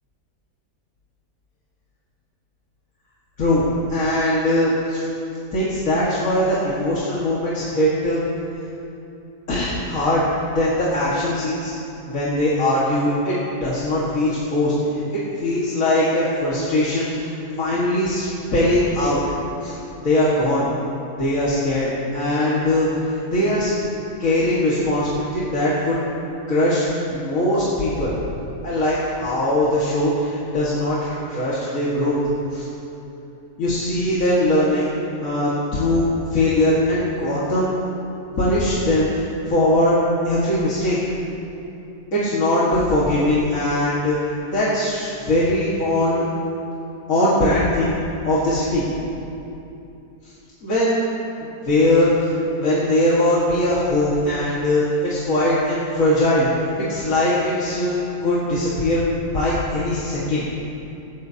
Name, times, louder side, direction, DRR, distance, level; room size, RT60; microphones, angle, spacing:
voice 1, 3.4-5.1 5.5-8.2 9.5-10.3 10.6-11.7 12.1-14.7 15.4-19.2 19.6-19.8 20.0-20.7 21.2-23.7 24.2-26.0 26.5-28.1 28.6-32.2 32.5-32.7 33.6-34.9 35.2-37.7 38.3-41.1 42.1-44.2 44.5-46.2 47.1-47.9 48.3-48.8 50.6-51.0 51.6-52.3 52.6-56.5 56.9-59.0 59.3-60.5, left 1 dB, 55° left, -8 dB, 2.2 m, -20 dB
18.0 x 14.5 x 2.8 m, 2.8 s
omnidirectional pair, 1.7 m